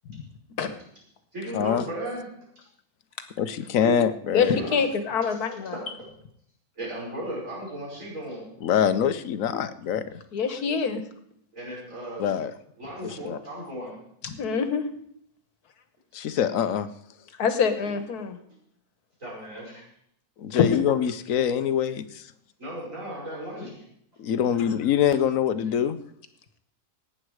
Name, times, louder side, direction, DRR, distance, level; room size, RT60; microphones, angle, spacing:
voice 1, 1.3-2.3 3.8-4.0 4.5-4.8 5.7-5.9 6.8-8.5 11.5-12.3 12.8-14.0 19.2-19.8 22.6-23.8, right 1 dB, 55° right, -5 dB, 6.1 m, -35 dB
voice 2, 3.4-4.5 8.6-10.0 12.2-12.5 13.2-13.4 16.1-16.9 20.4-22.2 24.2-26.0, left 9 dB, 65° left, 12 dB, 1.1 m, -24 dB
voice 3, 4.3-5.8 10.3-11.0 14.2-14.8 17.4-18.4 20.5-20.9, left 6 dB, 80° left, 9 dB, 1.7 m, -25 dB
18.5 x 8.9 x 4.8 m, 0.70 s
omnidirectional pair, 1.6 m